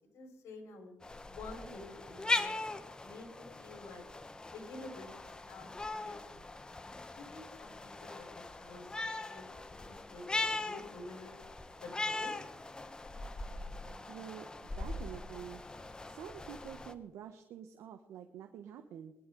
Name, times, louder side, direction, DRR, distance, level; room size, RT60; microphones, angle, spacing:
voice 1, 0.1-0.9 1.2-2.5 3.0-4.0 4.5-6.4 7.2-9.5 9.8-11.4 11.8-12.3, left 3 dB, 80° left, 2 dB, 4.8 m, -50 dB
sound 1, 1.0-16.9, left 2 dB, 15° left, 1.0 m, -40 dB
voice 2, 14.1-14.5 14.8-15.6 16.0-19.1, right 9 dB, 80° right, 7 dB, 1.1 m, -47 dB
22.5 x 11.0 x 3.9 m, 0.88 s
cardioid pair, 125°, 5 cm